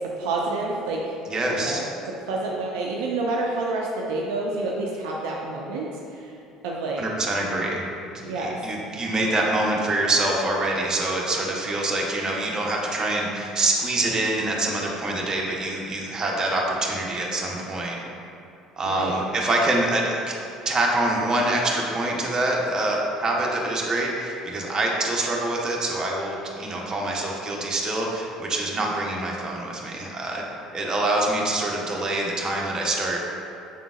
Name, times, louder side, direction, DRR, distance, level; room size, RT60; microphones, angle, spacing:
voice 1, 0.2-1.2 1.5-6.3 6.6-7.0 8.2-8.6 18.9-19.2, right 2 dB, 70° right, -2 dB, 0.4 m, -28 dB
voice 2, 1.3-1.8 7.0-18.0 18.8-20.2 20.6-30.4 30.7-33.3, right 2 dB, 30° right, -2 dB, 0.9 m, -25 dB
5.7 x 3.7 x 2.4 m, 2.6 s
hypercardioid pair, 60°, 2 cm